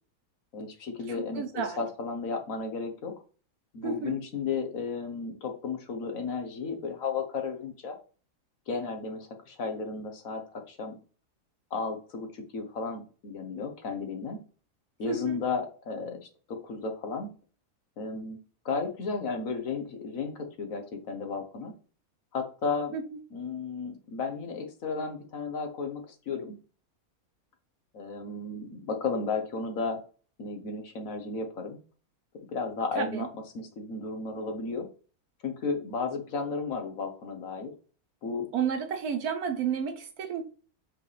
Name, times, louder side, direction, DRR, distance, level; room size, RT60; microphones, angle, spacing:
voice 1, 0.5-3.1 3.7-8.0 8.7-10.9 11.7-14.4 15.0-17.3 18.0-18.4 18.6-21.7 22.3-22.9 23.3-26.6 27.9-30.0 30.4-31.8 32.5-33.3 33.5-34.9 35.4-37.7 38.2-38.5, left 4 dB, 65° left, 1.5 m, -34 dB
voice 2, 1.1-1.8 3.8-4.2 15.1-15.4 22.9-23.2 33.0-33.3 38.5-40.4, right 7 dB, 80° right, 1.4 m, -32 dB
6.1 x 4.7 x 3.3 m
omnidirectional pair, 1.6 m